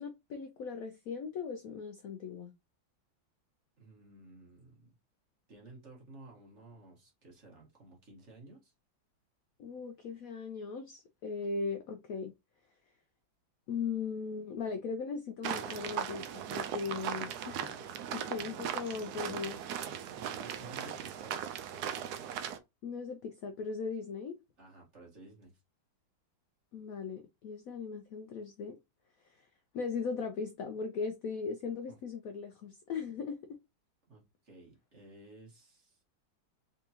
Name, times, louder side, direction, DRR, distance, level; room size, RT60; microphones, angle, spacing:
voice 1, 0.0-2.5 9.6-12.3 13.7-17.8 18.1-19.6 22.8-24.4 26.7-28.8 29.2-29.5 29.7-33.6, left 5 dB, 85° left, 0.7 m, -38 dB
voice 2, 3.8-4.9 5.5-8.7 20.1-21.4 24.6-25.5 31.9-32.0 34.1-36.0, right 2 dB, 40° right, 1.5 m, -54 dB
sound 1, 15.4-22.6, right 9 dB, 75° right, 0.9 m, -38 dB
3.6 x 3.6 x 2.8 m
omnidirectional pair, 2.1 m